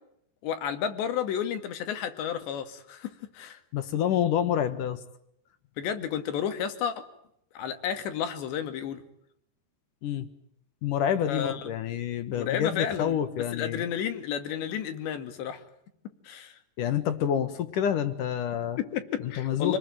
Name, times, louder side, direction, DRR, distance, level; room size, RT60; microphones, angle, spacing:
voice 1, 0.4-3.6 5.8-7.0 7.6-9.0 11.3-11.7 12.3-15.6 16.3-16.5 18.9-19.8, left 8 dB, 90° left, 9 dB, 4.4 m, -32 dB
voice 2, 3.7-5.0 10.0-10.3 10.8-13.8 16.8-18.8 19.2-19.8, left 9 dB, 60° left, 12 dB, 2.6 m, -28 dB
28.5 x 20.5 x 9.3 m, 0.75 s
omnidirectional pair, 4.9 m